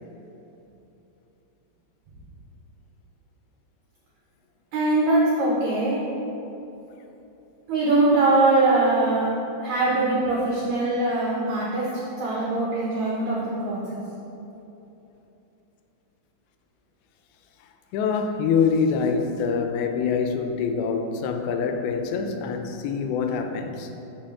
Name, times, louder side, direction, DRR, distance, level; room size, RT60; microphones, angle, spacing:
voice 1, 4.7-6.0 7.7-9.3 9.6-11.9 12.2-14.0, right 2 dB, 85° right, -6 dB, 1.6 m, -22 dB
voice 2, 17.9-23.9, left 5 dB, 85° left, 6 dB, 2.4 m, -25 dB
7.5 x 5.3 x 3.6 m, 2.9 s
omnidirectional pair, 4.4 m